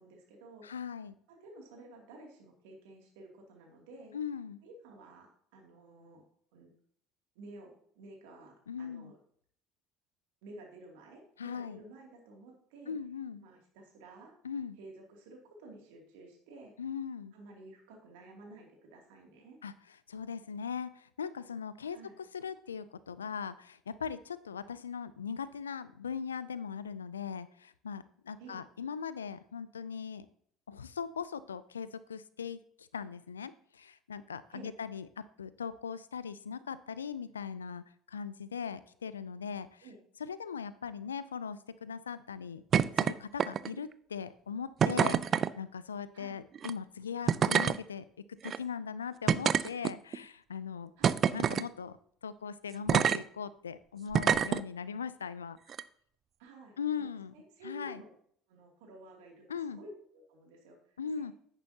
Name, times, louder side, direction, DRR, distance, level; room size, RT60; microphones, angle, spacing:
voice 1, 0.0-0.7 1.3-4.1 4.6-6.2 6.5-6.7 7.3-9.2 10.4-13.0 13.4-14.3 14.8-16.7 17.3-19.6 21.9-22.2 28.4-28.6 34.5-34.7 39.8-40.0 46.1-46.4 51.0-51.2 56.4-56.8 57.3-58.1 58.5-59.4 59.7-61.3, right 2 dB, 75° right, 1 dB, 2.6 m, -52 dB
voice 2, 0.6-1.1 4.1-4.6 8.7-9.1 11.4-11.8 12.9-13.5 14.4-14.8 16.8-17.3 19.6-19.7 20.1-30.3 30.7-39.9 40.2-42.6 43.0-48.0 48.4-50.9 51.3-52.0 52.2-55.6 56.8-57.3 57.6-58.0 59.5-59.8 61.0-61.3, left 6 dB, 90° left, 16 dB, 0.4 m, -40 dB
sound 1, 42.7-43.1 43.4-43.8 44.8-45.5 46.6-46.7 47.3-47.8 48.4-48.6 49.3-50.2 51.0-51.7 52.9-53.2 54.1-54.6 55.7-55.8, right 8 dB, 45° right, 0.4 m, -26 dB
10.5 x 9.0 x 2.8 m, 0.63 s
hypercardioid pair, 60°, 0 cm